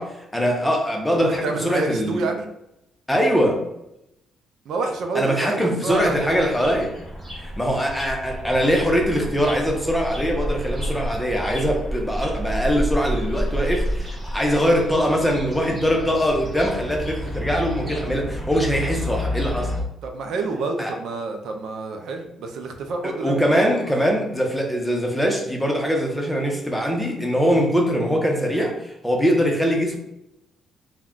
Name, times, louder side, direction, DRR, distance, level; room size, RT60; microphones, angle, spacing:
voice 1, 0.0-2.2 3.1-3.7 5.1-6.9 7.4-19.7 20.8-20.9 23.0-30.0, equal, 5° left, 1 dB, 0.7 m, -22 dB
voice 2, 1.1-2.5 4.7-6.4 20.0-23.6, right 3 dB, 75° right, 4 dB, 0.4 m, -28 dB
sound 1, 5.9-19.8, equal, 20° right, 1.2 m, -30 dB
2.3 x 2.1 x 3.6 m, 0.84 s
cardioid pair, 90°, 0 cm